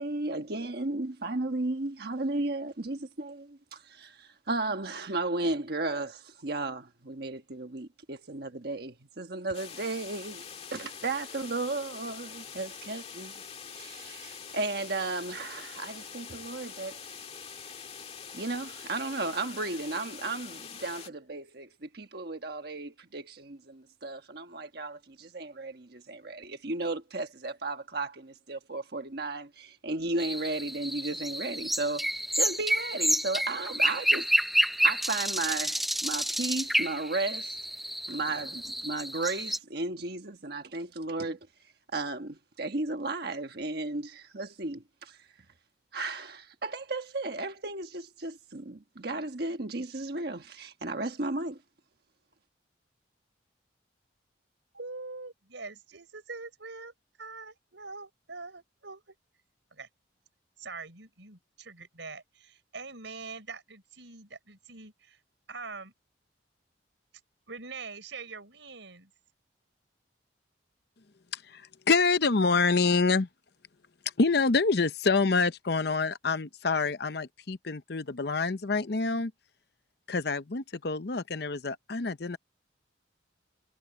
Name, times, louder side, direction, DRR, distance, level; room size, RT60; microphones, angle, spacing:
voice 1, 0.0-13.4 13.7-17.2 18.3-34.3 34.6-37.6 38.1-41.4 41.9-45.2 45.9-51.6, right 2 dB, 55° right, 1.3 m, -34 dB
sound 1, 9.5-21.1, left 7 dB, 35° left, 2.1 m, -44 dB
sound 2, 30.2-39.6, equal, ahead, 0.6 m, -29 dB
voice 2, 54.7-56.9 57.2-59.1 59.7-59.9 60.6-65.2 65.5-65.9 67.5-69.1, right 4 dB, 75° right, 4.7 m, -43 dB
voice 3, 71.3-73.3 74.2-79.3 80.1-82.4, left 4 dB, 55° left, 0.8 m, -27 dB
head